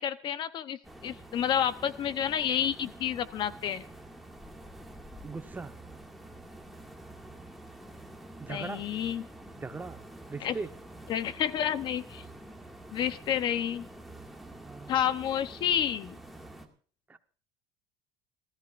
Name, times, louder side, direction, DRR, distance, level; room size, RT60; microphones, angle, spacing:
voice 1, 0.0-3.8 8.5-9.2 10.4-10.6 11.1-12.2 12.9-13.9 14.9-16.2, left 9 dB, 45° left, 12 dB, 0.9 m, -30 dB
sound 1, 0.8-16.7, right 1 dB, ahead, 2.1 m, -48 dB
voice 2, 5.2-5.7 8.4-8.8 9.6-10.0 10.3-10.7 14.6-15.0 17.1-17.2, right 4 dB, 15° right, 8 dB, 1.1 m, -39 dB
28.5 x 14.0 x 2.5 m, 0.41 s
cardioid pair, 120°, 11 cm